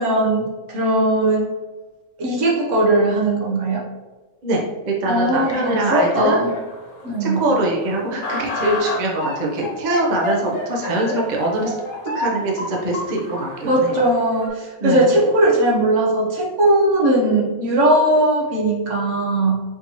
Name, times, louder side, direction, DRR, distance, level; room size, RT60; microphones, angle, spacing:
voice 1, 0.0-1.5 2.2-3.8 5.1-6.5 7.0-7.4 13.6-19.6, right 1 dB, 60° right, -3 dB, 1.0 m, -19 dB
voice 2, 4.9-6.4 7.2-11.7 12.1-14.0 14.8-15.1, right 1 dB, 45° right, -2 dB, 0.6 m, -23 dB
sound 1, 5.3-14.5, left 1 dB, 80° left, 1.3 m, -30 dB
4.4 x 2.8 x 2.9 m, 1.2 s
omnidirectional pair, 1.5 m